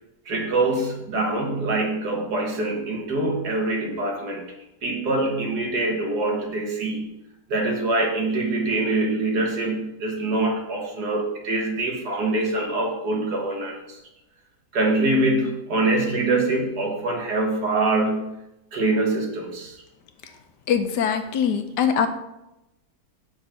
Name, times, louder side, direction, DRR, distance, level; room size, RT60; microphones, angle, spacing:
voice 1, 0.3-4.5 4.8-7.2 7.5-14.0 14.7-18.4 18.7-19.8, right 2 dB, 75° right, 1 dB, 2.1 m, -24 dB
voice 2, 20.7-22.1, left 7 dB, 85° left, 8 dB, 1.5 m, -22 dB
7.4 x 5.8 x 5.7 m, 0.91 s
omnidirectional pair, 1.8 m